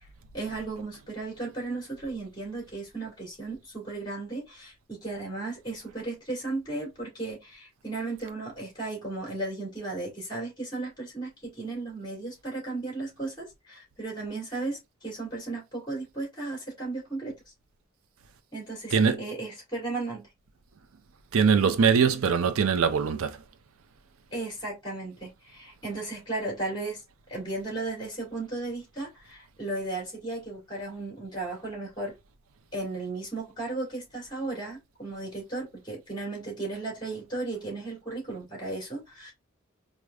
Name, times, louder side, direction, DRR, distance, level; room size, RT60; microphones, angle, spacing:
voice 1, 0.3-17.4 18.5-20.3 24.3-27.0 27.3-32.1 32.7-39.3, right 2 dB, 20° left, 2.1 m, -35 dB
voice 2, 18.9-19.2 21.3-23.4, right 6 dB, 80° right, 0.5 m, -22 dB
4.7 x 2.1 x 2.3 m
head